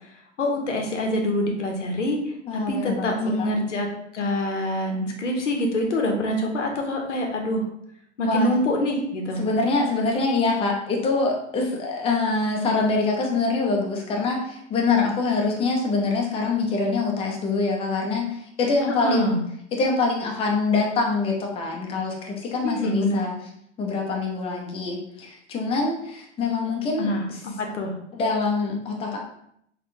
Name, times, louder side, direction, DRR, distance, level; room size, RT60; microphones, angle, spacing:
voice 1, 0.4-2.2 2.5-7.6 8.2-9.4 18.8-19.4 22.6-23.3 27.0-27.2 27.6-27.9, left 1 dB, 85° left, 2 dB, 0.7 m, -25 dB
voice 2, 2.5-3.5 8.2-8.5 9.4-19.4 19.7-23.3 23.8-27.4 28.1-29.2, left 3 dB, 15° left, 0 dB, 0.5 m, -25 dB
3.5 x 2.2 x 2.6 m, 0.73 s
figure-of-eight pair, 95°, 35 cm